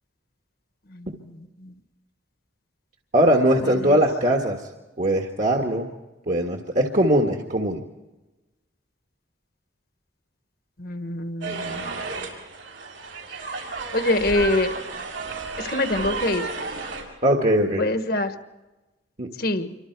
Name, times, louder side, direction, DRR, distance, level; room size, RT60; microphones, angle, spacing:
voice 1, 3.1-4.7 5.0-5.9 6.3-7.8 17.2-17.8 19.2-19.3, right 1 dB, 40° right, 2 dB, 1.6 m, -21 dB
voice 2, 10.8-11.9 13.9-14.7 15.6-16.5 17.8-18.3 19.4-19.8, left 2 dB, 55° left, 8 dB, 1.4 m, -24 dB
sound 1, 11.4-17.0, right 3 dB, 85° right, 6.4 m, -32 dB
27.5 x 24.5 x 4.7 m, 1.1 s
head